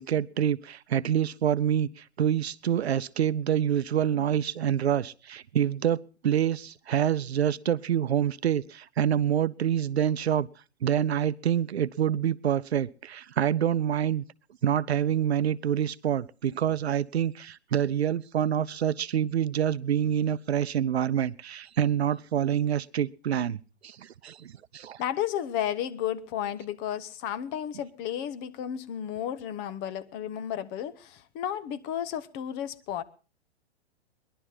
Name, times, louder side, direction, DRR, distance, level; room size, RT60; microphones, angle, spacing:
voice 1, 0.0-10.5 10.8-14.2 14.6-23.6 23.8-25.0, right 9 dB, 75° right, 0.7 m, -26 dB
voice 2, 25.0-33.0, left 10 dB, 30° left, 1.1 m, -33 dB
20.5 x 11.5 x 5.7 m
figure-of-eight pair, 115°, 33 cm